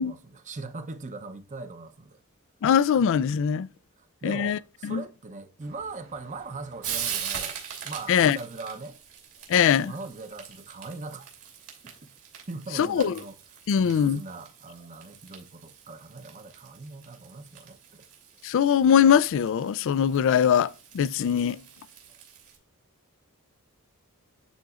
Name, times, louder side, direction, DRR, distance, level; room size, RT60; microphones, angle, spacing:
voice 1, 0.0-2.2 3.4-3.5 4.2-7.6 7.8-9.0 9.8-11.3 11.8-12.1 12.5-13.4 13.7-18.1, right 3 dB, 35° right, 0.7 m, -40 dB
voice 2, 2.6-3.7 4.2-5.0 8.1-8.4 9.5-9.9 12.8-13.1 13.7-14.2 18.4-21.6, left 8 dB, 60° left, 0.3 m, -22 dB
Frying (food), 5.6-22.6, right 8 dB, 85° right, 2.8 m, -42 dB
11.5 x 4.0 x 2.4 m
head